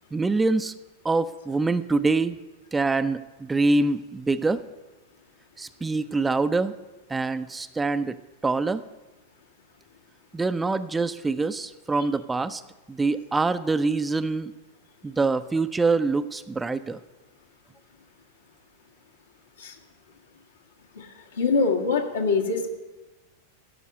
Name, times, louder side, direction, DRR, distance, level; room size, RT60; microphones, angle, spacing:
voice 1, 0.1-0.7 1.0-2.4 2.7-4.6 5.6-6.7 7.1-8.2 8.4-8.8 10.3-12.6 12.9-14.5 15.0-17.0, right 3 dB, 10° right, 12 dB, 0.4 m, -25 dB
voice 2, 21.4-22.7, left 4 dB, 70° left, 0 dB, 1.6 m, -24 dB
13.5 x 5.6 x 9.4 m, 1.1 s
figure-of-eight pair, 90°, 0 cm